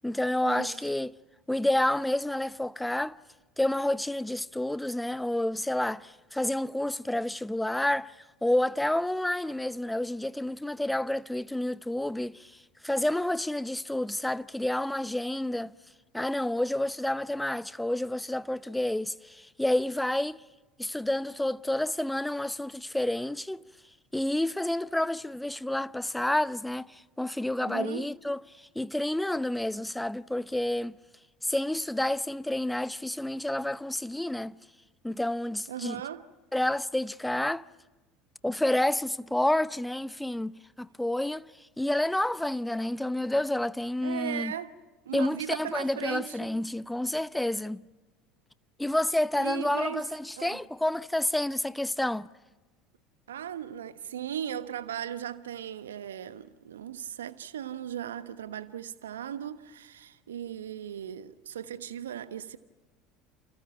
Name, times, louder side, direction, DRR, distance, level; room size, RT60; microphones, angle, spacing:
voice 1, 0.0-1.1 1.5-3.2 3.6-8.1 8.4-12.5 12.8-15.7 16.1-20.4 20.8-23.6 24.1-30.9 31.4-34.6 35.0-36.0 36.5-37.6 38.4-41.5 41.8-44.5 45.1-47.8 48.8-52.3, left 1 dB, 5° left, 0.8 m, -29 dB
voice 2, 27.6-28.1 35.7-36.2 44.0-44.8 45.0-46.3 49.4-50.0 50.4-50.6 53.3-62.6, right 10 dB, 75° right, 1.1 m, -37 dB
29.5 x 29.0 x 5.9 m
figure-of-eight pair, 70°, 0 cm